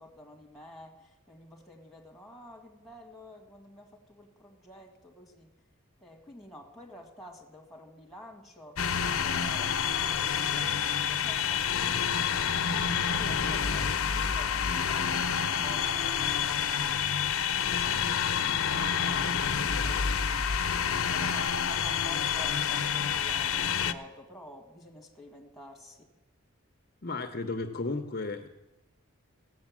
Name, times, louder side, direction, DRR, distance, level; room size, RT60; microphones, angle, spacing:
voice 1, 0.0-5.5 6.0-8.8 9.2-11.6 12.8-17.0 18.2-20.5 21.1-26.1, left 1 dB, ahead, -2 dB, 1.9 m, -50 dB
sound 1, 8.8-23.9, left 7 dB, 80° left, 0.7 m, -28 dB
voice 2, 27.0-28.5, left 3 dB, 45° left, 6 dB, 0.7 m, -34 dB
16.5 x 8.0 x 7.4 m, 0.99 s
head